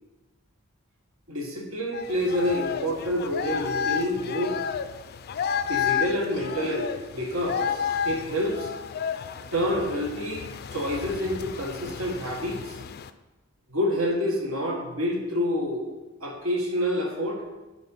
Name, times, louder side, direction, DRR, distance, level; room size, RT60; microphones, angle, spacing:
voice 1, 1.3-4.6 5.7-8.7 9.5-10.4 10.7-12.8 13.7-15.9 16.2-17.4, equal, 75° right, 0 dB, 1.5 m, -28 dB
sound 1, 1.9-13.1, left 7 dB, 50° left, 0.4 m, -32 dB
9.2 x 4.3 x 5.5 m, 1.1 s
head